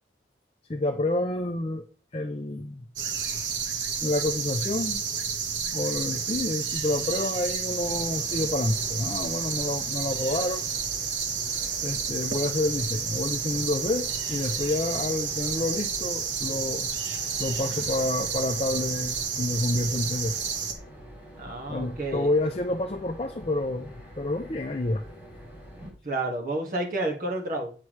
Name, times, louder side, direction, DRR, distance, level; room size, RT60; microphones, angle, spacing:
voice 1, 0.7-1.8 2.1-2.9 4.0-5.0 5.7-10.7 11.8-16.9 17.4-20.4 21.7-25.0, left 2 dB, 30° left, 0.5 m, -29 dB
sound 1, 3.0-20.7, right 6 dB, 90° right, 1.2 m, -30 dB
sound 2, 7.8-25.9, equal, 10° right, 3.4 m, -46 dB
voice 2, 21.4-22.3 26.0-27.7, right 2 dB, 50° right, 1.8 m, -30 dB
8.3 x 6.1 x 3.2 m
head